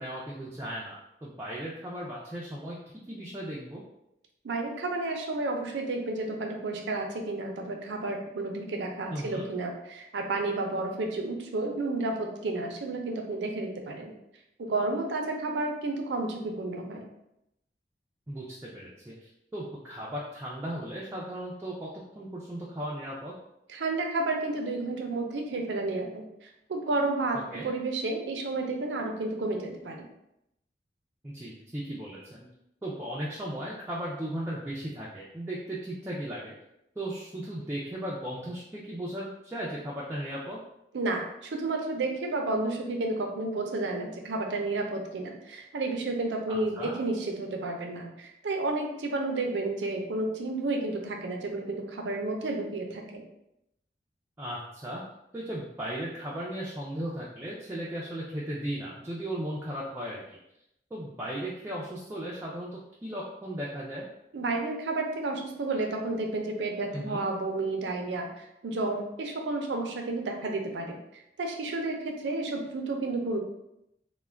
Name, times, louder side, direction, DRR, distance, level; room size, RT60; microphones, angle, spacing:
voice 1, 0.0-2.8 3.1-3.8 9.1-9.5 18.3-21.9 22.2-23.3 27.5-27.7 31.2-32.5 32.8-36.5 37.0-40.6 46.5-47.0 54.4-55.0 55.3-60.2 60.9-64.1 66.9-67.2, right 1 dB, 15° right, -6 dB, 0.3 m, -36 dB
voice 2, 4.4-14.1 14.6-17.1 23.7-30.1 40.9-53.2 64.3-73.4, right 2 dB, 85° right, 2 dB, 0.5 m, -31 dB
2.3 x 2.1 x 3.2 m, 0.82 s
head